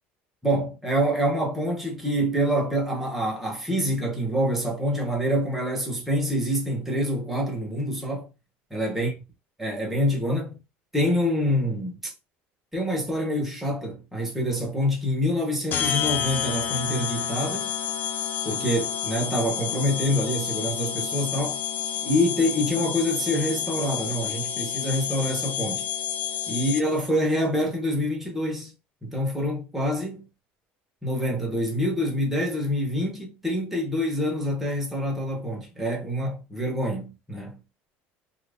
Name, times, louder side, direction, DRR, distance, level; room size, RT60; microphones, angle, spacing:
voice 1, 0.4-8.3 8.7-9.1 9.6-10.6 10.9-12.1 12.7-17.7 18.4-21.6 22.0-25.8 26.5-28.7 29.0-30.2 31.0-37.6, equal, 5° right, 1.1 m, -26 dB
sound 1, 15.7-27.1, left 9 dB, 40° left, 0.4 m, -29 dB
3.0 x 2.5 x 3.5 m
cardioid pair, 150°, 5 cm